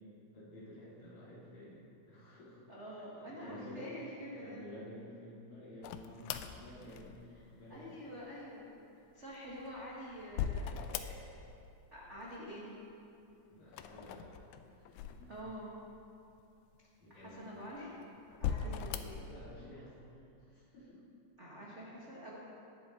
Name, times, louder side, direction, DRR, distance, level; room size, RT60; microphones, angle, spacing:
voice 1, 0.3-1.8 2.1-2.6 2.9-3.9 4.4-8.0 13.5-14.3 14.8-15.3 17.0-17.5 18.4-18.9 19.1-20.2 20.5-21.0, equal, 55° left, -8 dB, 4.2 m, -52 dB
voice 2, 2.7-4.7 7.7-8.8 9.1-11.2 11.9-12.7 15.3-15.7 17.1-18.0 18.4-19.2 21.4-22.4, equal, 40° right, -6 dB, 1.0 m, -47 dB
sound 1, 5.8-7.5 9.3-11.6 11.8-12.5 13.7-15.8 16.4-16.5 17.3-17.9 18.3-19.3, left 8 dB, 80° left, 1.8 m, -40 dB
20.0 x 7.7 x 3.8 m, 2.7 s
omnidirectional pair, 3.9 m